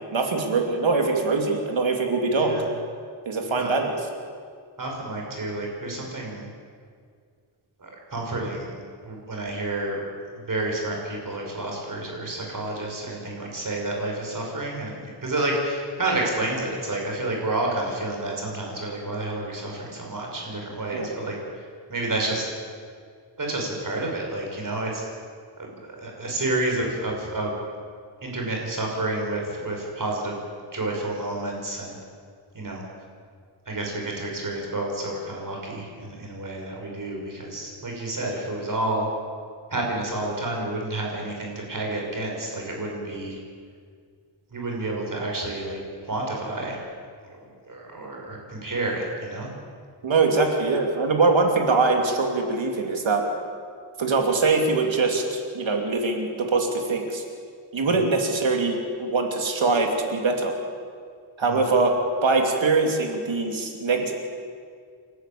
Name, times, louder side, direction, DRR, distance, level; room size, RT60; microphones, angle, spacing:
voice 1, 0.1-2.6 3.3-3.9 20.9-21.1 50.0-53.2 54.0-57.2 57.7-60.5 61.4-61.9 62.2-64.1, right 3 dB, 75° right, 3 dB, 3.0 m, -23 dB
voice 2, 2.3-2.7 3.4-3.7 4.8-6.5 7.8-10.1 10.3-21.6 21.9-22.5 23.4-25.0 25.6-27.5 28.2-30.4 30.7-32.0 32.5-32.8 33.7-39.1 39.7-43.4 44.5-46.8 47.6-49.5 57.8-57.9 61.4-61.6, right 2 dB, 45° right, 0 dB, 5.4 m, -30 dB
29.0 x 12.5 x 8.6 m, 2.1 s
wide cardioid pair, 175°, 47 cm